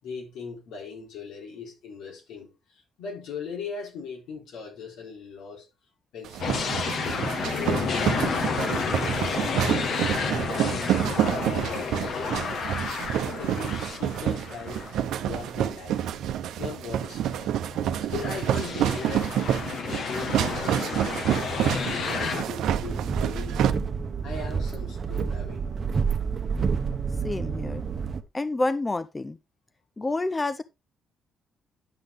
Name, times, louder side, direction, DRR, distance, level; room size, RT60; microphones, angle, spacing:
voice 1, 0.0-5.7 6.1-6.7 7.5-9.6 10.4-12.5 13.2-14.9 15.2-16.1 16.6-17.5 18.0-19.3 19.9-23.7 24.2-25.6, left 5 dB, 85° left, 4.0 m, -39 dB
sound 1, 6.2-23.7, right 10 dB, 85° right, 0.8 m, -28 dB
sound 2, 6.4-15.5 16.0-16.1 17.5-22.4, left 5 dB, 65° left, 1.5 m, -31 dB
sound 3, 22.6-28.2, right 5 dB, 45° right, 1.0 m, -29 dB
voice 2, 27.2-27.8 28.3-29.4 30.0-30.6, left 2 dB, 20° left, 0.5 m, -28 dB
10.5 x 5.9 x 3.6 m
cardioid pair, 90°, 0 cm